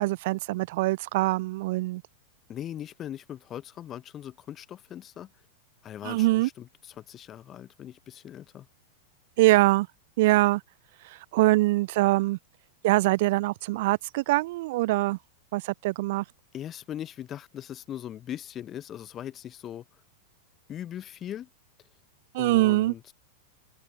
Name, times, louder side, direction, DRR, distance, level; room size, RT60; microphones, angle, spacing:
voice 1, 0.0-2.0 6.0-6.5 9.4-9.9 10.2-10.6 11.0-12.4 12.8-15.2 15.5-16.2 22.3-22.9, right 19 dB, 60° right, 0.8 m, -23 dB
voice 2, 2.5-5.3 5.8-8.7 16.5-19.8 20.7-21.5 22.4-23.1, left 10 dB, 30° left, 4.8 m, -40 dB
open air
hypercardioid pair, 125°, 0 cm